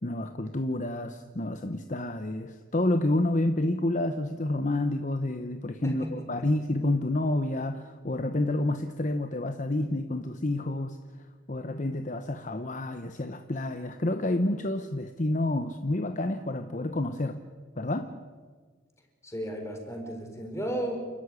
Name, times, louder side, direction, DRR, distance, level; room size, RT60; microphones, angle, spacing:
voice 1, 0.0-11.0 11.5-17.4 17.8-18.2, left 1 dB, 35° left, 8 dB, 0.9 m, -29 dB
voice 2, 5.8-6.3 19.2-21.0, equal, 15° left, 3 dB, 4.4 m, -34 dB
29.0 x 13.0 x 9.8 m, 1.5 s
head